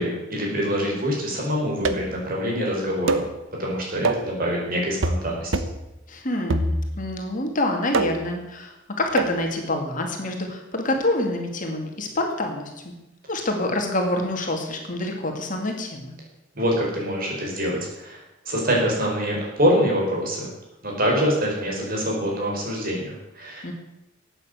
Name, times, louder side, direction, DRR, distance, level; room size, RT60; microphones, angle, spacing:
voice 1, 0.0-3.2 3.6-5.5 16.5-18.2 18.4-20.5 20.8-23.7, equal, 50° right, -2 dB, 4.7 m, -25 dB
sound 1, 1.8-2.2 3.1-3.3 4.0-4.3 5.0-5.3 5.5-5.8 6.5-7.1 7.9-8.3 9.2-9.4, right 2 dB, 75° right, 1.0 m, -24 dB
voice 2, 6.1-12.9 13.3-16.1 23.6-23.7, left 1 dB, 45° left, 2 dB, 2.3 m, -27 dB
12.5 x 8.9 x 7.9 m, 0.96 s
head